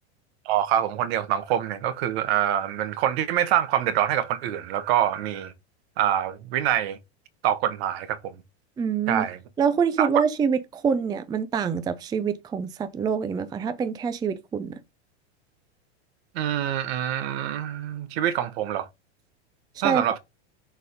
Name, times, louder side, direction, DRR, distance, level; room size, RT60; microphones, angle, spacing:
voice 1, 0.4-5.5 6.0-7.0 7.4-8.3 9.1-9.4 10.0-10.1 16.3-18.9 19.8-20.2, right 11 dB, 65° right, 1.4 m, -25 dB
voice 2, 8.8-9.3 9.6-14.8 19.7-20.1, right 6 dB, 10° right, 0.5 m, -26 dB
6.6 x 4.0 x 5.2 m
supercardioid pair, 140°, 34 cm